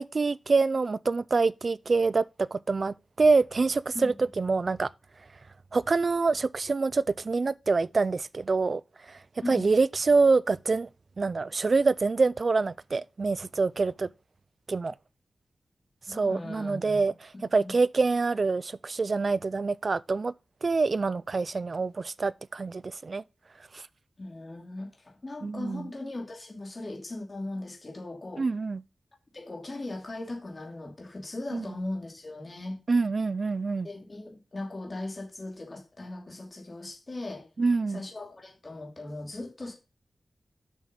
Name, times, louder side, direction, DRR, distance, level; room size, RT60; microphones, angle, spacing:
voice 1, 0.0-4.9 5.7-8.8 9.1-9.2 9.5-10.9 11.2-14.1 14.7-14.9 16.1-20.3 20.6-23.2 23.7-23.8 25.4-25.9 28.4-28.8 31.5-31.7 32.9-33.9 37.6-38.0, right 4 dB, 50° right, 0.4 m, -26 dB
voice 2, 9.4-9.7 16.1-17.0 17.5-17.8 24.2-28.4 29.3-32.8 33.8-37.5 37.9-39.7, left 2 dB, 35° left, 2.6 m, -38 dB
7.3 x 6.4 x 5.3 m
wide cardioid pair, 85°, 0 cm